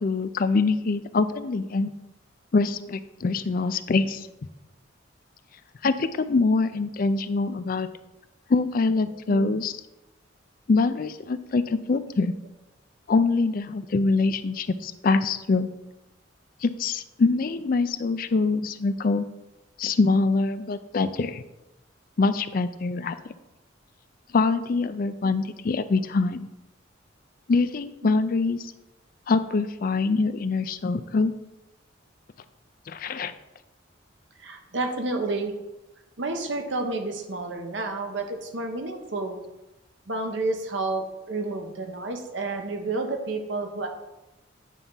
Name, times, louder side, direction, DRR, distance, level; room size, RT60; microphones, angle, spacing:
voice 1, 0.0-1.9 2.5-4.3 5.8-7.9 8.5-9.7 10.7-12.3 13.1-15.7 16.6-19.3 19.8-21.4 22.2-23.3 24.3-26.5 27.5-28.6 29.3-31.3 32.9-33.3, left 3 dB, 45° left, 12 dB, 0.4 m, -24 dB
voice 2, 34.4-35.6 36.2-39.4 40.1-43.9, right 2 dB, 70° right, 4 dB, 1.1 m, -30 dB
9.1 x 3.4 x 5.5 m, 0.99 s
head